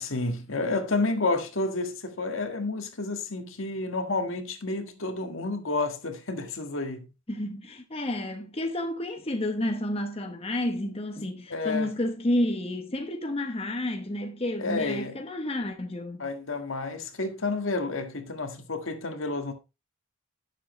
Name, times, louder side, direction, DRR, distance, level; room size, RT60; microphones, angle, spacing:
voice 1, 0.0-7.1 11.5-11.9 14.6-15.1 16.2-19.5, left 3 dB, 70° left, 1.7 m, -30 dB
voice 2, 7.3-16.3, left 1 dB, 30° left, 1.0 m, -30 dB
10.5 x 7.6 x 3.2 m
head